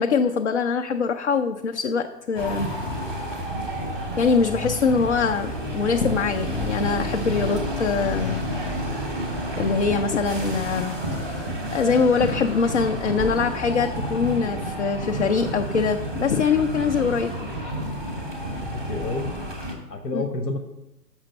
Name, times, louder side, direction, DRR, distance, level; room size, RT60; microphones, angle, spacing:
voice 1, 0.0-2.7 3.6-3.8 4.2-8.4 9.6-17.5 20.1-20.3, left 5 dB, 50° left, 5 dB, 0.5 m, -23 dB
sound 1, 2.4-19.7, equal, ahead, 0.6 m, -30 dB
voice 2, 18.6-19.3 19.9-20.6, left 2 dB, 90° left, 6 dB, 1.1 m, -30 dB
6.2 x 6.0 x 6.6 m, 0.94 s
hypercardioid pair, 155°, 48 cm